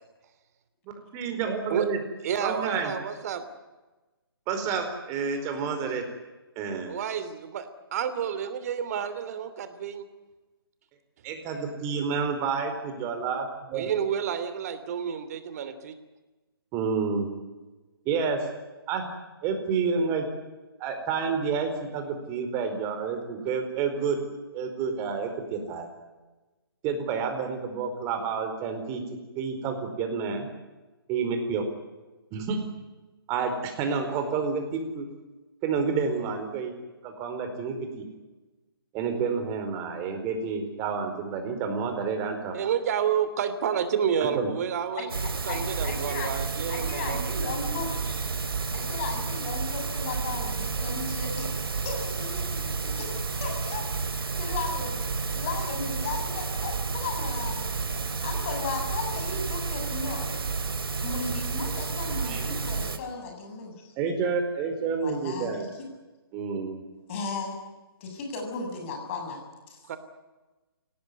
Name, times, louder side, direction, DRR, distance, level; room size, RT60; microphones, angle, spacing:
voice 1, 1.1-2.0 2.4-2.9 4.5-6.0 6.6-6.9 11.2-13.9 16.7-17.3 18.0-18.4 18.9-19.1 19.4-20.3 20.8-24.2 24.5-25.9 26.8-29.0 29.3-30.5 31.1-31.6 32.3-32.6 33.3-35.0 35.6-36.7 37.0-38.0 38.9-42.6 44.3-44.5 62.2-62.6 64.0-65.7 66.3-66.8, right 5 dB, 25° right, 5 dB, 4.6 m, -29 dB
voice 2, 2.2-3.4 6.9-10.0 13.7-15.9 42.5-45.1 45.4-47.3 69.9-70.0, right 8 dB, 40° right, 11 dB, 3.0 m, -30 dB
sound 1, 45.1-63.0, right 4 dB, 70° right, 2.7 m, -31 dB
voice 3, 45.5-46.3 46.7-48.5 48.7-53.8 54.3-55.0 55.3-57.7 58.2-60.3 61.0-63.9 65.0-65.9 67.1-67.6 68.0-69.8, left 4 dB, 35° left, 3 dB, 7.6 m, -36 dB
25.5 x 18.0 x 9.7 m, 1.2 s
figure-of-eight pair, 140°, 13 cm